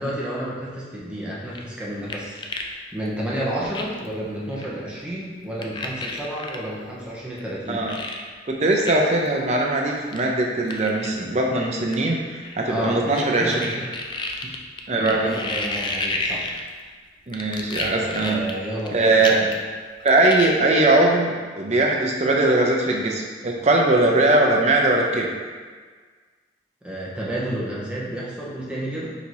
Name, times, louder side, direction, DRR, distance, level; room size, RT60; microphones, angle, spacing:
voice 1, 0.0-7.9 12.7-13.0 13.4-13.8 14.9-16.5 18.1-19.5 26.8-29.1, right 1 dB, 5° right, -7 dB, 0.8 m, -30 dB
sound 1, 1.5-2.7 3.0-3.1 3.7-4.1 4.5-4.7 5.6-6.6 7.4-7.5 7.9-8.2 8.8-8.9 9.3-9.4 10.1-10.2 10.7-11.1 11.9-13.2 13.5-16.9 17.3-18.9 19.2-19.7 20.0-20.5, left 3 dB, 25° left, 0.3 m, -30 dB
voice 2, 8.5-13.8 14.9-15.4 17.3-18.4 18.9-19.4 20.0-25.3, right 2 dB, 40° right, -1 dB, 0.6 m, -20 dB
4.0 x 2.8 x 4.6 m, 1.5 s
head